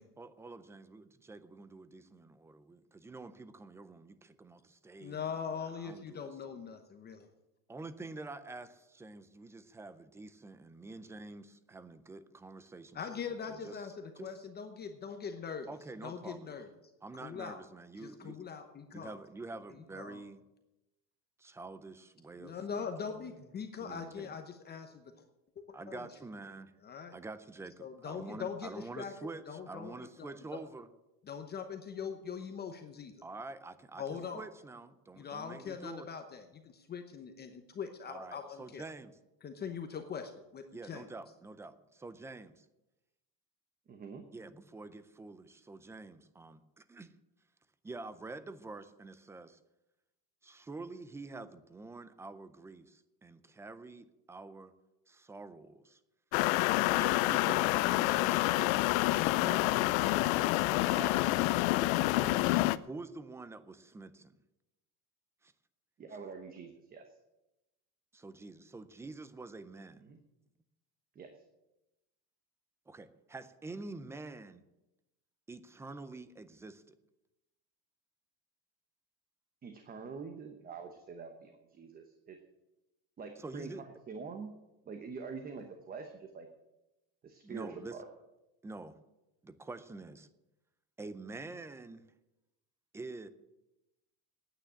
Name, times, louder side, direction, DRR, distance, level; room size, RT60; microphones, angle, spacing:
voice 1, 0.2-6.3 7.7-13.2 13.5-13.8 14.2-14.3 15.7-16.5 17.0-18.4 18.9-20.4 21.4-23.3 23.8-24.4 25.7-26.7 27.1-30.9 33.2-36.1 38.1-39.1 40.7-42.7 44.3-47.1 47.8-49.6 50.4-54.7 55.1-56.0 56.9-60.0 60.7-62.5 62.8-64.3 65.4-65.5 68.1-70.0 72.9-74.6 75.5-76.9 83.4-83.8 87.4-88.0 88.6-89.0 89.4-90.3 91.0-92.1 92.9-93.3, right 3 dB, 5° right, 13 dB, 0.4 m, -47 dB
voice 2, 5.0-7.3 12.9-15.7 16.0-16.7 17.2-17.6 18.0-19.2 20.0-20.2 22.4-25.1 25.6-26.1 26.8-27.1 27.8-29.1 29.5-30.6 31.3-33.1 34.0-34.4 35.2-38.8 39.4-41.0, left 6 dB, 25° left, 6 dB, 0.9 m, -42 dB
voice 3, 43.9-44.3 66.0-67.1 70.0-70.2 71.1-71.3 79.6-82.4 83.2-84.5 84.9-86.5 87.2-88.1, right 5 dB, 20° right, 6 dB, 1.0 m, -45 dB
sound 1, 56.3-62.8, left 18 dB, 85° left, 0.6 m, -28 dB
9.7 x 9.1 x 9.7 m, 0.99 s
cardioid pair, 155°, 40 cm